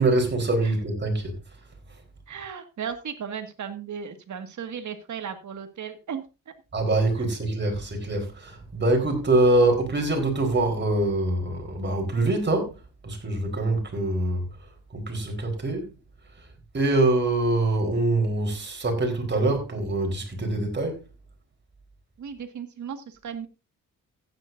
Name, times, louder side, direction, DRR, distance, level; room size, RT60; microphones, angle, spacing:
voice 1, 0.0-1.6 1.9-2.0 6.7-16.0 16.3-21.0, right 2 dB, 35° right, 4.1 m, -24 dB
voice 2, 2.3-6.5 22.2-23.5, right 7 dB, 60° right, 1.9 m, -36 dB
15.0 x 9.8 x 2.6 m
cardioid pair, 100°, 33 cm